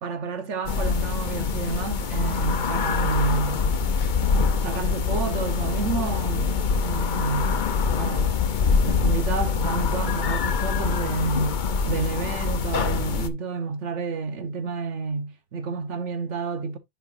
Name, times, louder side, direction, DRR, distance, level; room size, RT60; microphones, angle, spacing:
voice 1, 0.0-3.7 4.6-8.4 8.8-16.8, right 4 dB, 70° right, 1.4 m, -30 dB
sound 1, 0.7-13.3, left 5 dB, 45° left, 0.7 m, -24 dB
10.5 x 4.7 x 2.5 m
omnidirectional pair, 1.3 m